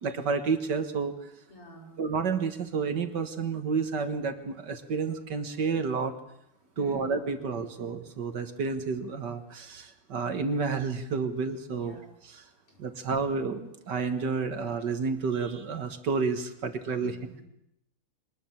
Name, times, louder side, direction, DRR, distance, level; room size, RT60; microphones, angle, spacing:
voice 1, 0.0-1.3 2.0-6.1 6.8-12.0 12.3-12.5 12.8-17.2, right 5 dB, 55° right, 9 dB, 1.9 m, -30 dB
voice 2, 1.5-2.0 6.8-7.3 11.7-12.1 12.7-12.8 17.0-17.4, equal, 85° left, 1 dB, 5.7 m, -48 dB
23.0 x 20.0 x 7.2 m, 0.77 s
omnidirectional pair, 2.4 m